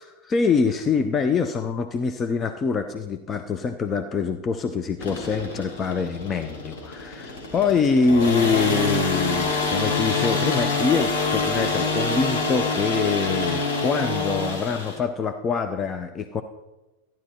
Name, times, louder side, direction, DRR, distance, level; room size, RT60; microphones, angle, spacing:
voice 1, 0.0-16.4, left 5 dB, 25° left, 7 dB, 0.7 m, -25 dB
Gas-powered hedge trimmer, 5.0-15.0, left 3 dB, 55° left, 2.7 m, -26 dB
14.0 x 10.5 x 4.3 m, 1.1 s
figure-of-eight pair, 90°, 0 cm